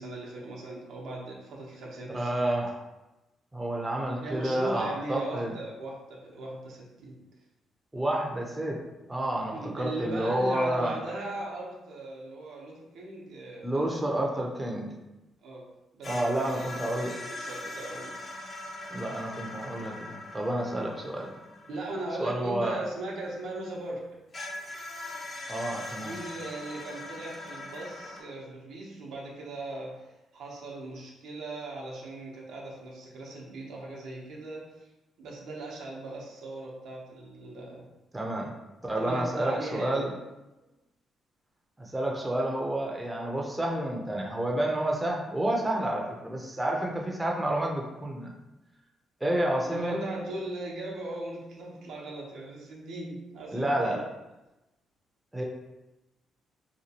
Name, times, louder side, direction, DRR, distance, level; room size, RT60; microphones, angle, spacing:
voice 1, 0.0-2.5 4.2-7.2 9.5-14.0 14.3-14.4 15.4-15.7 15.9-18.2 21.7-24.0 25.9-34.9 35.2-37.9 39.0-40.1 49.6-54.0, right 2 dB, 80° right, -3 dB, 0.7 m, -38 dB
voice 2, 2.1-2.8 3.5-5.5 7.9-8.8 9.1-11.0 13.6-14.9 16.0-17.2 18.9-21.3 22.2-22.8 25.5-26.1 38.1-38.5 38.8-40.1 41.8-48.3 49.2-50.0 53.5-54.1 55.3-55.4, right 1 dB, 15° right, -1 dB, 0.5 m, -29 dB
sound 1, 16.0-23.7 24.3-28.2, left 2 dB, 40° left, 0.6 m, -41 dB
2.8 x 2.3 x 2.8 m, 1.0 s
cardioid pair, 90°, 0 cm